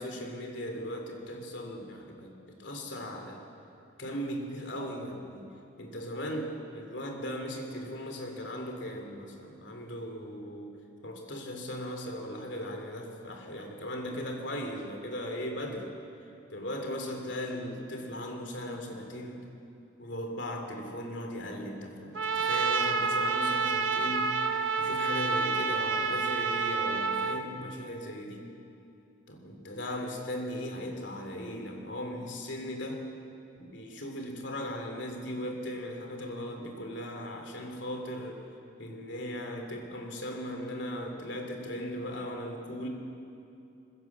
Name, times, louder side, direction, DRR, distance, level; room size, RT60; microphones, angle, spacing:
voice 1, 0.0-3.4 4.0-5.5 5.8-10.7 11.0-15.9 16.5-19.5 20.0-24.3 24.8-28.5 29.3-33.0 33.6-38.4 38.8-42.9, equal, 65° left, 3 dB, 3.0 m, -38 dB
Trumpet, 22.2-27.4, right 4 dB, 90° right, 1.0 m, -28 dB
21.5 x 16.5 x 7.3 m, 2.7 s
head